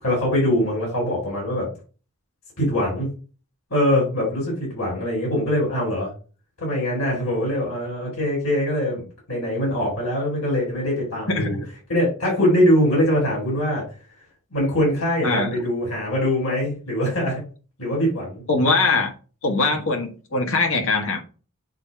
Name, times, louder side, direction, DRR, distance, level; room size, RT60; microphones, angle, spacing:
voice 1, 0.0-1.7 2.6-3.1 3.7-6.1 6.6-11.6 11.9-13.8 14.5-17.4 17.8-18.4, equal, 80° left, -4 dB, 4.1 m, -22 dB
voice 2, 18.5-19.1 19.4-21.2, left 3 dB, 65° left, 3 dB, 1.6 m, -21 dB
8.1 x 2.9 x 5.4 m, 0.37 s
head